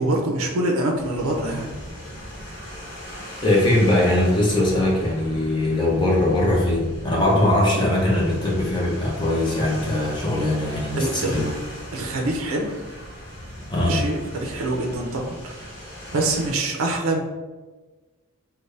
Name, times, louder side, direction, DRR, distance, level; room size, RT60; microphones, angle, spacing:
voice 1, 0.0-1.7 11.0-11.4 11.9-12.8 13.9-15.8 16.1-17.2, right 2 dB, 70° right, 0 dB, 0.5 m, -25 dB
sound 1, 0.9-16.5, equal, 50° left, 1.2 m, -39 dB
voice 2, 3.4-11.5 13.7-14.0, left 1 dB, 20° left, -4 dB, 0.7 m, -21 dB
4.0 x 2.2 x 3.3 m, 1.2 s
head